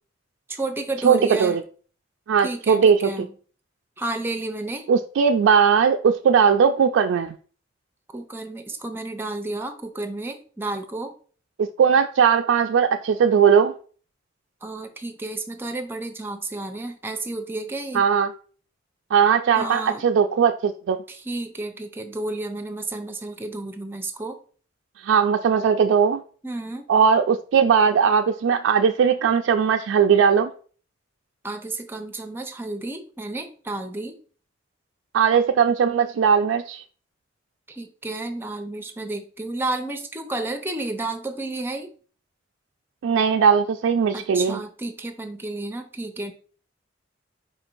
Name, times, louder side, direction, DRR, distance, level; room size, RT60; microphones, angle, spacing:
voice 1, 0.5-1.6 2.4-3.3 4.0-4.9 8.1-11.1 14.6-18.1 19.6-20.0 21.1-24.4 26.4-26.9 31.4-34.2 37.7-41.9 44.1-46.3, right 2 dB, 10° right, 0.5 m, -31 dB
voice 2, 1.0-1.6 2.3-3.1 4.9-7.3 11.8-13.7 17.9-18.3 19.1-21.0 25.0-26.2 26.9-30.5 35.1-36.8 43.0-44.6, right 6 dB, 80° right, 0.3 m, -19 dB
4.7 x 2.6 x 4.4 m
head